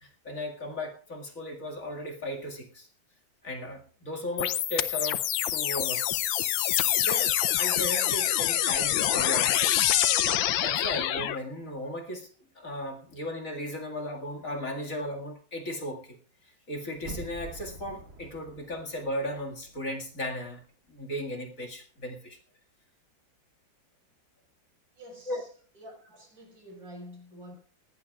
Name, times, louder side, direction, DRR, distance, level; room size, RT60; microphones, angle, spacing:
voice 1, 0.0-2.9 3.4-5.2 5.5-6.1 6.7-9.7 10.6-12.3 12.6-16.2 16.4-20.6 20.9-22.4 25.3-25.4, left 1 dB, 45° left, 2.5 m, -36 dB
sound 1, 4.4-11.4, left 12 dB, 90° left, 1.6 m, -26 dB
sound 2, 17.0-19.9 20.2-20.3, right 2 dB, 45° right, 2.5 m, -45 dB
voice 2, 24.9-25.5 25.7-27.5, equal, 75° right, 6.3 m, -47 dB
19.5 x 17.5 x 2.4 m
omnidirectional pair, 2.1 m